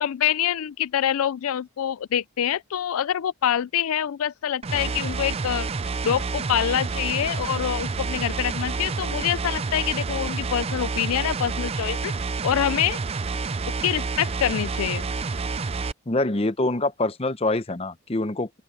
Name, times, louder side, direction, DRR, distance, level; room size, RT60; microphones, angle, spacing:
voice 1, 0.0-5.7 6.0-12.1 12.4-13.0 13.8-15.0, left 10 dB, 75° left, 0.4 m, -25 dB
sound 1, 4.6-15.9, right 4 dB, 25° right, 0.4 m, -29 dB
sound 2, 7.8-12.9, equal, 65° right, 5.6 m, -48 dB
voice 2, 16.1-18.6, left 2 dB, 25° left, 0.7 m, -25 dB
open air
head